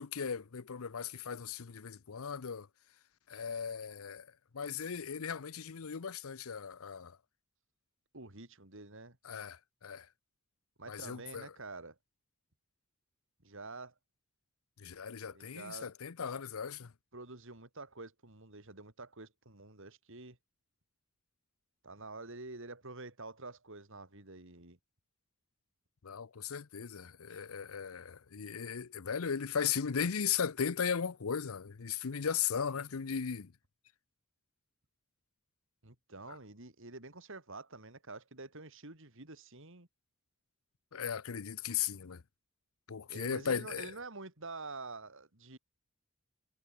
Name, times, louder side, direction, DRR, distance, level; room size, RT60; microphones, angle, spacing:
voice 1, 0.0-2.7 3.3-4.3 4.5-7.2 9.2-10.1 10.9-11.5 14.8-16.9 26.0-33.5 40.9-42.2 42.9-43.9, left 7 dB, 75° left, 0.7 m, -37 dB
voice 2, 8.1-9.2 10.8-12.0 13.4-13.9 15.3-15.9 17.1-20.4 21.8-24.8 35.8-39.9 43.1-45.6, right 3 dB, 60° right, 3.5 m, -48 dB
head